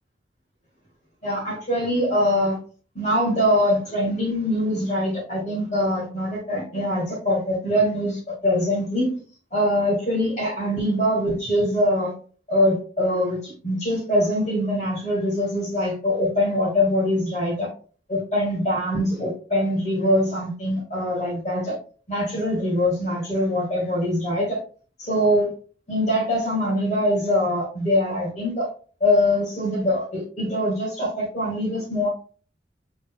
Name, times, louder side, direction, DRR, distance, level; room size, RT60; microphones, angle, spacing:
voice 1, 1.2-2.6 2.9-9.2 9.5-12.1 12.5-17.7 18.1-21.7 22.1-24.6 25.0-25.5 25.9-28.7 29.0-32.1, left 1 dB, 40° left, -5 dB, 1.7 m, -23 dB
5.8 x 3.9 x 2.2 m, 0.40 s
head